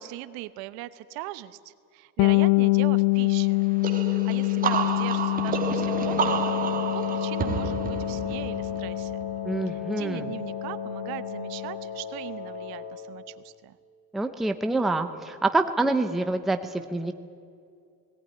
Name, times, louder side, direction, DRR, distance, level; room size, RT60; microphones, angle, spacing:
voice 1, 0.0-3.6 4.1-6.6 6.9-9.2 9.7-13.8, right 16 dB, 65° right, 14 dB, 1.0 m, -39 dB
Bass guitar, 2.2-11.8, left 27 dB, 60° left, 0.5 m, -26 dB
sound 1, 3.8-9.4, right 6 dB, 20° right, 1.5 m, -30 dB
Wind instrument woodwind instrument, 5.7-13.1, left 5 dB, 85° left, 5.0 m, -35 dB
voice 2, 9.4-10.3 14.1-17.1, right 2 dB, ahead, 7 dB, 0.5 m, -26 dB
18.5 x 18.0 x 9.9 m, 2.4 s
cardioid pair, 175°, 39 cm